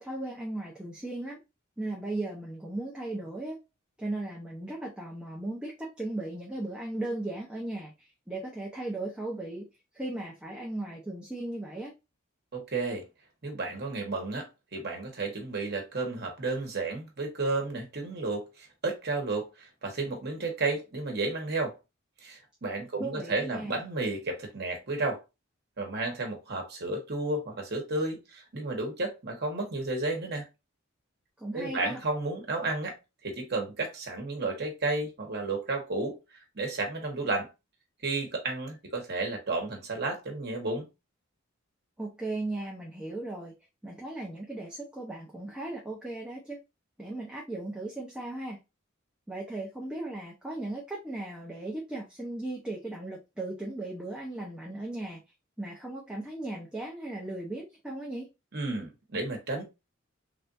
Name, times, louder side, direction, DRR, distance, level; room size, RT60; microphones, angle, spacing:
voice 1, 0.0-1.4 1.8-3.6 4.0-9.6 9.9-11.9 23.0-23.8 31.4-32.0 42.0-43.5 43.8-46.6 47.0-48.6 49.3-55.2 55.6-58.3, right 2 dB, 5° right, 0.6 m, -37 dB
voice 2, 12.5-13.0 13.4-21.7 22.2-25.2 25.8-30.4 31.5-33.0 33.2-36.2 36.5-37.5 38.0-40.9 58.5-59.6, right 2 dB, 55° right, 1.1 m, -32 dB
3.3 x 2.5 x 2.5 m
head